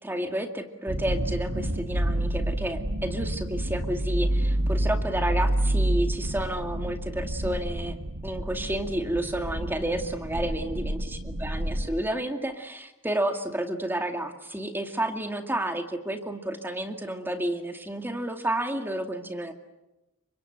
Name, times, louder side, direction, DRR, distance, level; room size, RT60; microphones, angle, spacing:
voice 1, 0.0-8.0 8.2-19.5, right 1 dB, 10° right, 5 dB, 2.3 m, -31 dB
sound 1, 0.9-11.9, right 1 dB, 80° right, 2.3 m, -29 dB
29.5 x 25.5 x 8.0 m, 1.0 s
head